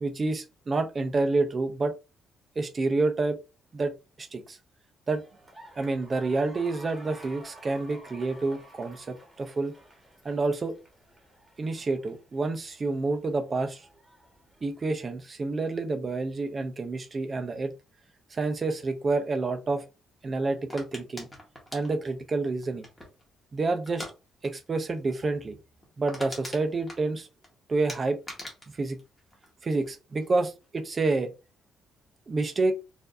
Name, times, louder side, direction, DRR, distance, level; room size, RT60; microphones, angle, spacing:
voice 1, 0.0-1.9 2.6-3.4 3.7-4.6 5.1-5.2 5.8-9.7 10.2-10.7 11.6-13.9 14.6-17.7 18.3-19.8 20.2-21.3 21.7-22.9 23.5-24.1 24.4-25.6 26.0-27.3 27.7-28.2 28.7-29.0 29.6-31.3 32.3-32.7, right 3 dB, 25° right, 0.5 m, -28 dB
sound 1, 5.1-14.9, right 1 dB, 5° right, 1.1 m, -52 dB
sound 2, 20.7-23.3 23.9-24.1 24.4-24.7 24.9-25.0 25.4-25.5 25.8-27.5 27.9-29.9 30.2-30.7, left 1 dB, 10° left, 1.2 m, -42 dB
4.5 x 2.6 x 2.5 m
cardioid pair, 170°, 0 cm